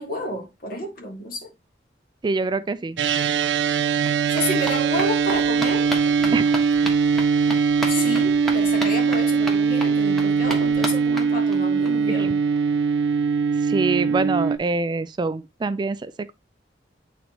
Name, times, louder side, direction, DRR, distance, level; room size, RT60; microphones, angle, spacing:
voice 1, 0.0-1.5 4.3-6.4 7.9-12.4, left 1 dB, 55° left, 1.8 m, -30 dB
voice 2, 2.2-3.0 6.3-6.5 8.0-8.2 12.1-12.3 13.6-16.3, right 3 dB, 25° right, 0.3 m, -26 dB
sound 1, 3.0-14.6, right 5 dB, 80° right, 0.5 m, -21 dB
Sprint - Street, 3.1-3.2 3.4-11.9 12.2-12.3 12.6-12.7 12.9-13.0, right 1 dB, ahead, 1.3 m, -35 dB
8.6 x 4.1 x 2.9 m
head